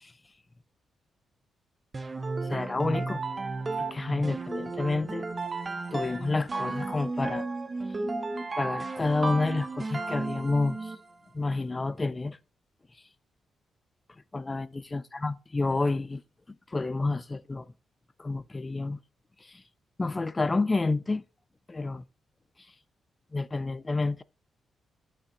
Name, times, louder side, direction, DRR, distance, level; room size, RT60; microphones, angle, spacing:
sound 1, 1.9-11.1, right 3 dB, 25° right, 0.6 m, -34 dB
voice 1, 2.5-3.2 3.9-5.3 5.9-7.5 8.6-10.9 11.3-12.4 14.3-16.2 16.7-17.7 18.2-19.0 19.4-19.6 20.0-21.2 21.7-22.0 23.3-24.2, left 3 dB, 20° left, 0.4 m, -29 dB
8.5 x 5.5 x 3.7 m
cardioid pair, 135°, 0 cm